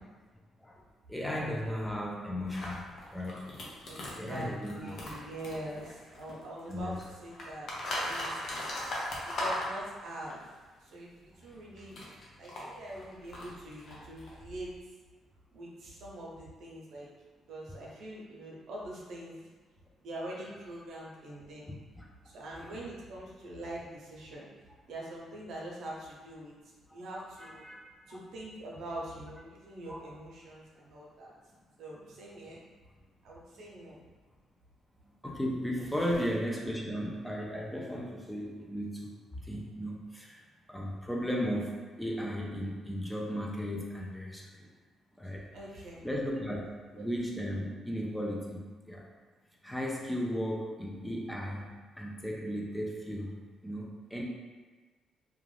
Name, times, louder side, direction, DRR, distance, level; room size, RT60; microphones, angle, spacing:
voice 1, 1.1-3.5 4.2-5.1 6.7-7.0 7.8-8.0 11.4-11.6 15.6-15.7 22.0-22.1 22.6-22.7 26.9-27.1 27.4-27.8 28.1-28.2 29.9-30.0 31.5-31.6 33.5-33.6 35.0-40.4 40.7-44.7 45.2-45.5 46.0-46.6 46.9-49.1 49.6-53.3 53.6-54.2, equal, 5° left, -2 dB, 0.4 m, -36 dB
sound 1, 2.5-6.4 6.7-10.3 11.5-14.8, left 1 dB, 60° left, 0.7 m, -38 dB
voice 2, 3.9-7.7 8.0-8.9 9.2-10.5 10.8-14.7 15.5-17.1 17.5-19.3 20.0-21.7 22.2-24.5 24.9-26.5 26.9-27.6 28.1-31.3 31.8-32.6 33.2-34.1 36.0-36.1 45.5-46.1 46.9-47.0, right 1 dB, 70° right, -4 dB, 0.7 m, -44 dB
2.4 x 2.3 x 3.2 m, 1.4 s
cardioid pair, 90°, 0 cm